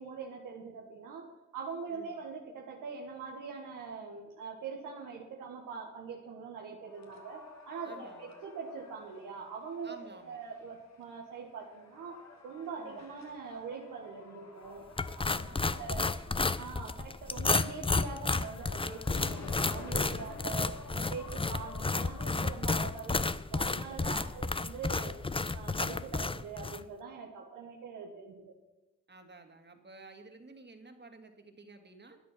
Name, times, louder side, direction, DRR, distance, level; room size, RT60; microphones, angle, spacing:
voice 1, 0.0-14.8 15.2-16.1 16.6-25.2 25.5-28.5, right 5 dB, 85° right, 0 dB, 1.6 m, -43 dB
sound 1, 6.8-23.4, left 3 dB, 60° left, 2.6 m, -51 dB
voice 2, 7.8-8.3 9.8-10.4 12.8-13.1 15.2-16.5 20.0-20.6 24.0-24.5 29.1-32.2, right 2 dB, 35° right, 5 dB, 2.5 m, -53 dB
sound 2, 15.0-26.8, left 3 dB, 15° left, 0.7 m, -32 dB
12.5 x 9.4 x 5.9 m, 1.0 s
supercardioid pair, 45°, 31 cm